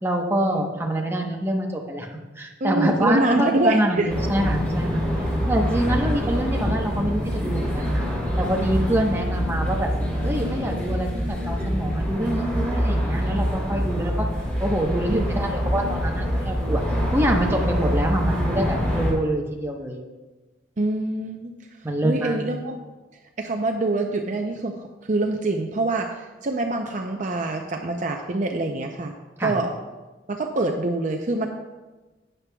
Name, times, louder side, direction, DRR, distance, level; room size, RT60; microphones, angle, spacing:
voice 1, 0.0-2.1 2.4-5.0 5.5-8.1 8.4-9.9 10.2-14.3 14.6-16.8 17.1-20.0 21.8-22.4 29.4-29.6, right 1 dB, 15° right, 0 dB, 1.0 m, -25 dB
voice 2, 2.6-4.1 15.1-15.3 20.8-21.5 22.0-22.8 23.4-24.8 25.0-29.1 29.4-29.7 30.3-31.5, right 2 dB, 45° right, 3 dB, 0.6 m, -25 dB
sound 1, 4.1-19.1, equal, 10° left, 3.3 m, -25 dB
11.5 x 9.2 x 2.3 m, 1.2 s
head